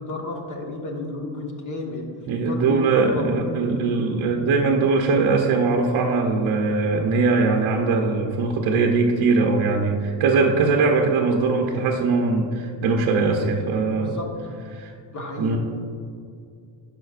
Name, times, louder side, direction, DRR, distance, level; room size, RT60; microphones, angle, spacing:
voice 1, 0.0-2.1 2.4-3.3 13.9-14.3 15.1-15.6, left 2 dB, 35° left, 1 dB, 1.4 m, -32 dB
voice 2, 2.3-14.2 14.7-14.9 15.4-15.6, right 4 dB, 50° right, 1 dB, 0.8 m, -21 dB
12.0 x 5.3 x 2.5 m, 2.4 s
cardioid pair, 100°, 50 cm